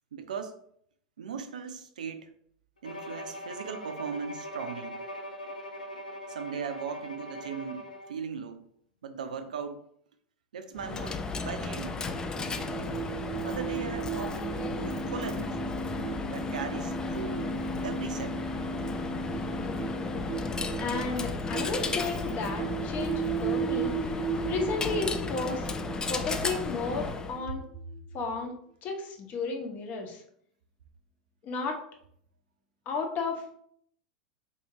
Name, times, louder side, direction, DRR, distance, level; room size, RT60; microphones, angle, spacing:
voice 1, 0.1-0.5 1.2-2.3 2.8-5.0 6.3-8.6 9.0-9.9 10.5-12.0 13.4-15.7 16.3-17.5 17.8-18.7 27.5-27.6, right 6 dB, 70° right, 8 dB, 0.5 m, -38 dB
Bowed string instrument, 2.8-8.2, equal, 85° left, 0.5 m, -41 dB
Coin (dropping), 10.8-27.4, left 3 dB, 15° left, 0.4 m, -34 dB
sound 1, 12.0-28.3, right 9 dB, ahead, 0.8 m, -37 dB
voice 2, 20.8-23.9 24.5-25.7 26.1-27.6 28.1-28.5 28.8-30.2 31.4-31.8 32.9-33.5, left 4 dB, 35° left, 2 dB, 0.9 m, -33 dB
4.6 x 2.7 x 2.9 m, 0.66 s
figure-of-eight pair, 90°, 4 cm